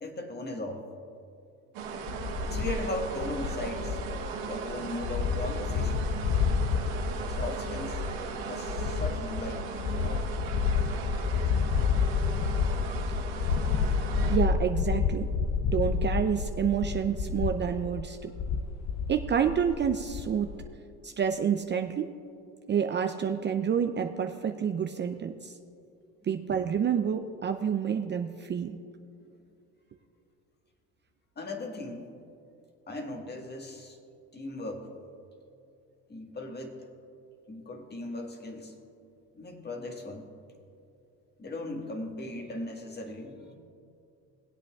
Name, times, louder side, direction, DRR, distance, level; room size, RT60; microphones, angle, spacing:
voice 1, 0.0-0.9 2.4-4.0 4.4-6.0 7.3-8.1 8.4-9.7 10.0-10.3 10.9-11.0 12.3-12.4 13.0-13.1 31.4-32.1 32.9-34.0 34.3-34.9 36.1-36.9 37.5-38.7 39.3-40.3 41.4-43.6, left 1 dB, 30° left, 3 dB, 1.6 m, -38 dB
sound 1, 1.7-14.4, right 5 dB, 70° right, 1.6 m, -37 dB
sound 2, 2.1-20.7, left 5 dB, 50° left, 0.7 m, -30 dB
voice 2, 14.3-15.3 15.7-18.3 19.1-20.5 21.0-22.1 22.7-25.6 26.2-28.8, right 7 dB, 30° right, 6 dB, 0.5 m, -28 dB
19.5 x 8.2 x 2.4 m, 2.6 s
hypercardioid pair, 70°, 36 cm